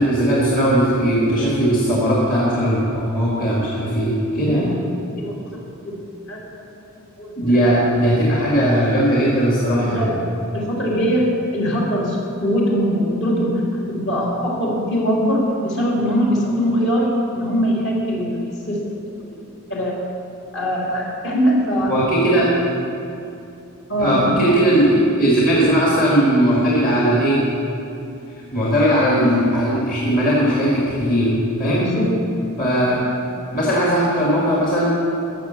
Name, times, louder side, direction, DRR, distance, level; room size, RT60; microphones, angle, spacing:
voice 1, 0.0-4.7 7.4-10.1 21.9-22.5 24.0-27.4 28.5-31.9 32.6-33.0 33.5-34.9, equal, 40° left, -5 dB, 1.9 m, -18 dB
voice 2, 4.4-4.9 5.2-5.6 5.8-6.0 6.3-6.6 7.2-7.3 9.7-10.2 10.5-18.8 19.7-20.0 20.5-21.9 23.9-24.5 31.8-32.1, equal, 55° left, -3 dB, 2.7 m, -22 dB
14.0 x 6.5 x 7.0 m, 2.6 s
head